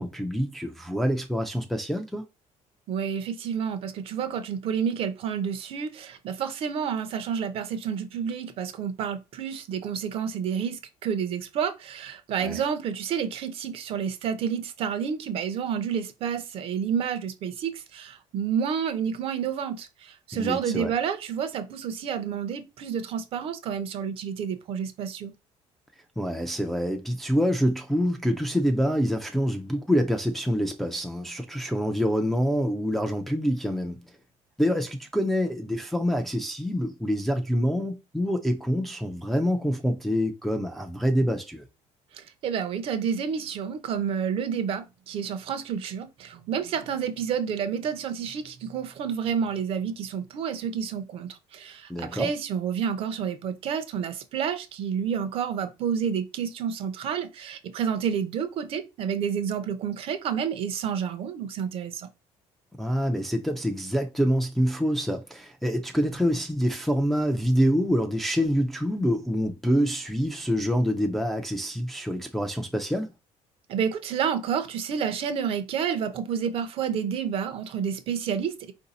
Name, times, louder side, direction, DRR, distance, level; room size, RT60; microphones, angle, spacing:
voice 1, 0.0-2.2 12.4-12.6 20.3-20.9 26.2-34.0 34.6-41.6 51.9-52.3 62.8-73.1, equal, ahead, 0.4 m, -26 dB
voice 2, 2.9-25.3 42.1-62.1 73.7-78.7, right 7 dB, 45° right, 0.6 m, -29 dB
4.7 x 2.6 x 4.0 m
cardioid pair, 170°, 13 cm